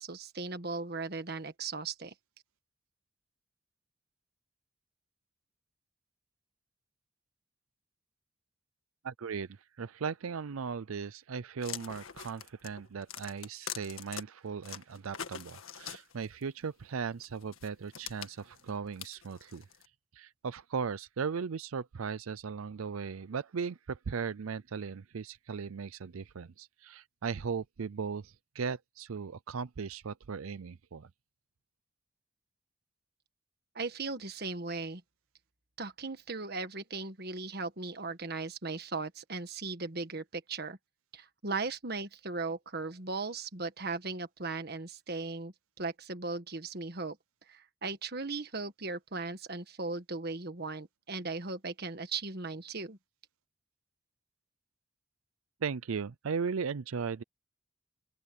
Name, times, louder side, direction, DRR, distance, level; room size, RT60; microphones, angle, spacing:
voice 1, 0.0-2.1 33.7-35.0 35.8-40.8 41.1-47.2 47.5-53.0, right 3 dB, 50° right, 1.5 m, -37 dB
voice 2, 9.0-19.6 20.1-31.1 55.6-57.2, right 5 dB, 90° right, 0.5 m, -37 dB
sound 1, 11.6-14.2 14.6-16.4 17.2-19.9, left 9 dB, 80° left, 1.7 m, -43 dB
open air
head